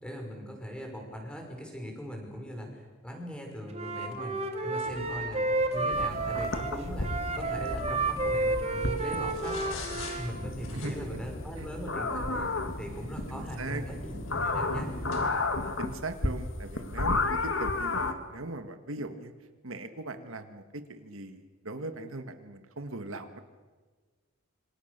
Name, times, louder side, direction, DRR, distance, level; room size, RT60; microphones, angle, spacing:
voice 1, 0.0-4.4 4.6-7.1 7.3-9.7 10.0-12.5 12.8-14.9, equal, 5° left, 1 dB, 5.7 m, -40 dB
Wind instrument woodwind instrument, 3.7-10.3, right 2 dB, 30° right, 2.4 m, -31 dB
sound 1, 4.8-15.3, left 1 dB, 80° left, 6.1 m, -41 dB
sound 2, 5.9-18.1, left 3 dB, 65° left, 2.0 m, -33 dB
voice 2, 13.3-13.8 15.8-19.3 19.6-23.4, right 2 dB, 70° right, 8 dB, 1.6 m, -39 dB
27.0 x 25.5 x 6.7 m, 1.4 s
head